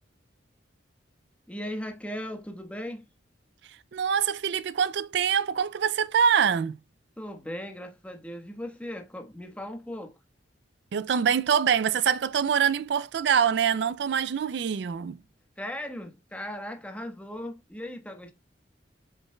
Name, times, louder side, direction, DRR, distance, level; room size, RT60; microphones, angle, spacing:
voice 1, 1.5-3.0 7.2-10.2 15.6-18.3, left 1 dB, 5° left, 1.2 m, -37 dB
voice 2, 3.9-6.8 10.9-15.2, right 7 dB, 65° right, 0.3 m, -24 dB
7.2 x 6.6 x 2.2 m
head